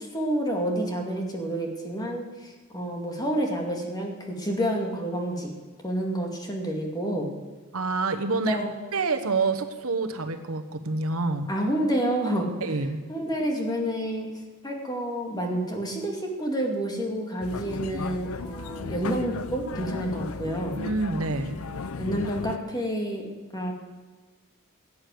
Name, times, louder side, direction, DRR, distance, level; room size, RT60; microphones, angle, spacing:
voice 1, 0.0-5.5 5.8-7.3 8.5-8.7 11.5-12.6 13.1-14.3 14.6-20.8 22.0-23.7, right 1 dB, 20° left, 1 dB, 2.3 m, -29 dB
voice 2, 7.7-8.6 8.9-11.5 12.6-13.0 20.8-21.6, right 3 dB, 70° right, 8 dB, 1.1 m, -27 dB
sound 1, 17.4-22.6, left 4 dB, 65° left, 0.6 m, -35 dB
17.0 x 8.6 x 7.8 m, 1.4 s
head